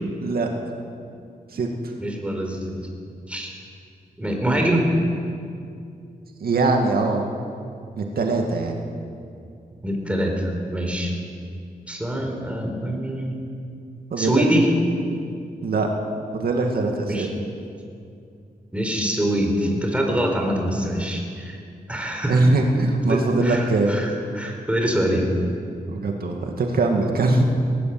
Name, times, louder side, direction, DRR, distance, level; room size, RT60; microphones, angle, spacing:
voice 1, 2.0-2.8 3.3-3.5 4.2-4.9 9.8-11.1 11.9-13.5 14.2-14.7 17.1-17.3 18.7-21.6 21.9-22.4 23.0-25.3, right 1 dB, 10° right, 1 dB, 4.5 m, -24 dB
voice 2, 6.4-7.2 8.0-8.8 14.1-14.4 15.6-15.9 16.3-17.3 22.3-24.0 25.9-27.4, right 3 dB, 80° right, 2 dB, 2.3 m, -21 dB
19.0 x 18.5 x 7.9 m, 2.4 s
wide cardioid pair, 90°, 15 cm